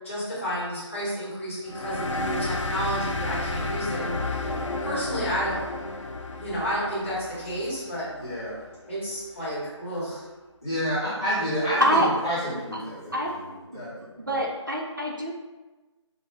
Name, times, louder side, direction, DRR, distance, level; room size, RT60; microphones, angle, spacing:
voice 1, 0.0-4.5 4.8-5.6 6.4-8.1 8.9-10.2, equal, 25° left, -10 dB, 1.4 m, -31 dB
sound 1, 1.7-8.8, left 2 dB, 90° left, 0.5 m, -32 dB
voice 2, 8.2-8.6 10.6-11.8 12.2-13.1 13.7-14.4, equal, 10° left, -15 dB, 0.9 m, -29 dB
voice 3, 11.8-12.1 12.7-12.8 13.1-13.4 13.7-13.8 14.2-15.3, right 1 dB, 45° right, -2 dB, 0.5 m, -25 dB
5.9 x 2.0 x 3.4 m, 1.2 s
figure-of-eight pair, 180°, 15 cm